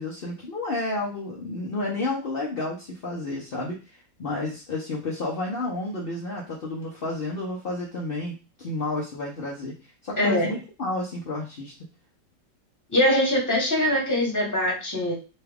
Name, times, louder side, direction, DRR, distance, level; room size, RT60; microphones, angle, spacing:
voice 1, 0.0-11.7, left 2 dB, 60° left, -3 dB, 0.6 m, -31 dB
voice 2, 10.2-10.6 12.9-15.1, left 1 dB, 15° left, -2 dB, 0.9 m, -22 dB
4.0 x 2.3 x 3.4 m, 0.31 s
omnidirectional pair, 2.0 m